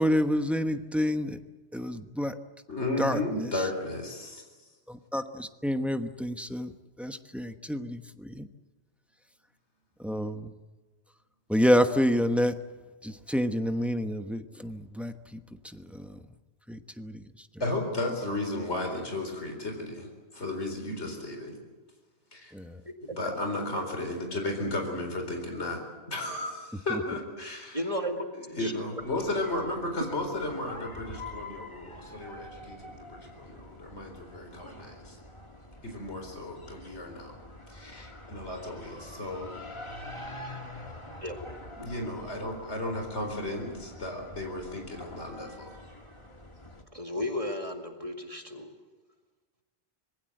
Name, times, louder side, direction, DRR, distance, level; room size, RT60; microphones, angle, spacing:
voice 1, 0.0-1.4 1.7-2.4 3.0-3.6 4.9-8.5 10.0-10.5 11.5-12.6 13.0-16.2 16.7-17.5 22.5-22.8 26.9-27.0, equal, ahead, 7 dB, 1.1 m, -29 dB
voice 2, 2.7-4.4 17.6-21.6 22.3-22.5 23.2-27.8 28.5-35.2 35.8-37.3 37.7-39.6 41.8-45.8, left 2 dB, 80° left, 3 dB, 4.5 m, -34 dB
voice 3, 27.7-28.7 41.2-41.5 46.9-48.7, left 1 dB, 30° right, 3 dB, 2.3 m, -34 dB
sound 1, 29.0-46.8, left 1 dB, 25° left, 2.5 m, -46 dB
26.0 x 21.0 x 7.8 m, 1.3 s
omnidirectional pair, 1.1 m